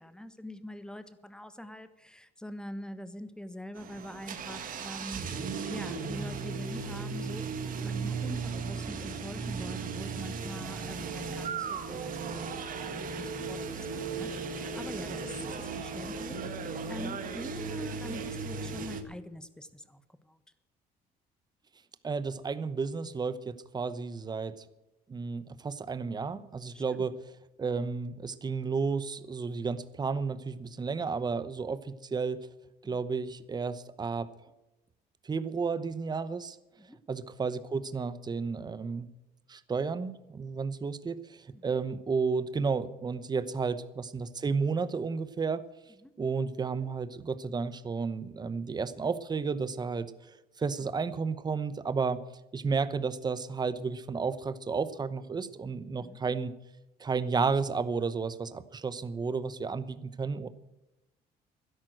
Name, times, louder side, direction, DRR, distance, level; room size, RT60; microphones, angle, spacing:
voice 1, 0.0-5.2 5.7-7.5 7.8-20.4 26.7-27.1 32.8-33.1 36.8-37.0 41.5-41.8 46.0-46.1 50.7-50.9 56.0-56.2, left 1 dB, 5° left, 11 dB, 1.3 m, -44 dB
sound 1, 3.7-19.0, right 5 dB, 55° right, 1.7 m, -36 dB
voice 2, 22.0-24.5 25.1-27.1 27.6-32.4 32.8-34.3 35.2-36.6 37.1-39.1 39.5-45.6 46.2-52.2 52.5-56.5 57.0-60.5, right 5 dB, 25° right, 14 dB, 0.9 m, -32 dB
12.5 x 11.0 x 7.8 m, 0.97 s
cardioid pair, 110°, 17 cm